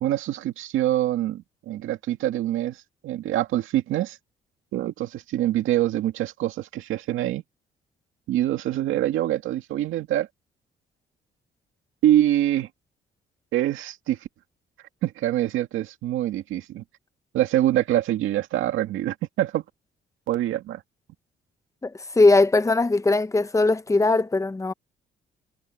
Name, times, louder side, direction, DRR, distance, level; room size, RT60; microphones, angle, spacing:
voice 1, 0.0-2.8 3.0-4.2 4.7-7.4 8.3-10.3 12.0-12.7 13.5-14.2 15.0-16.8 17.3-19.6 20.3-20.8, right 13 dB, 85° right, 2.1 m, -25 dB
voice 2, 22.2-24.7, left 2 dB, 15° left, 0.9 m, -19 dB
cardioid pair, 90°, 20 cm